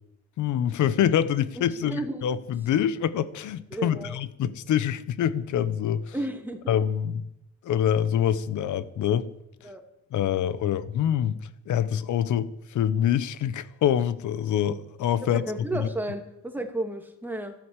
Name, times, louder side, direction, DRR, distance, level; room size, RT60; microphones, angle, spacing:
voice 1, 0.4-6.1 6.7-7.2 7.6-9.3 10.1-11.4 11.7-15.4 15.7-15.9, left 9 dB, 75° left, 1.1 m, -25 dB
voice 2, 1.6-2.2 3.7-4.2 6.1-6.7 9.6-9.8 15.3-17.5, right 1 dB, 5° right, 2.8 m, -33 dB
14.0 x 12.0 x 8.3 m
cardioid pair, 90°, 30 cm